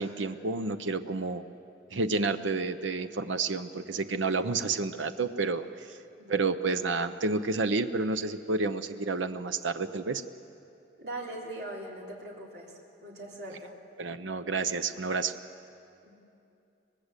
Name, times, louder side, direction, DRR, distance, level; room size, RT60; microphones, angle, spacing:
voice 1, 0.0-1.4 1.9-5.9 6.3-10.2 14.0-15.3, right 3 dB, 80° right, 10 dB, 0.8 m, -30 dB
voice 2, 11.0-13.7 16.0-16.1, right 1 dB, 55° right, -2 dB, 3.7 m, -41 dB
23.5 x 19.0 x 8.2 m, 2.6 s
head